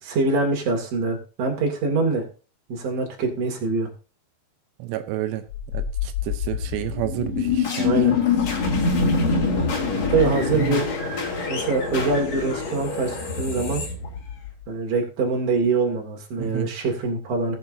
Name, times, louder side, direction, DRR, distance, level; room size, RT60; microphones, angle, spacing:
voice 1, 0.0-2.2 2.7-3.9 7.8-8.1 10.1-10.8 11.5-13.8 14.7-17.5, right 3 dB, 45° right, 3.2 m, -24 dB
voice 2, 4.8-5.4 5.7-7.9 10.5-10.8 16.4-16.7, right 14 dB, 85° right, 3.0 m, -30 dB
sound 1, 5.5-14.6, left 5 dB, 45° left, 2.7 m, -25 dB
19.5 x 7.0 x 2.7 m
omnidirectional pair, 4.9 m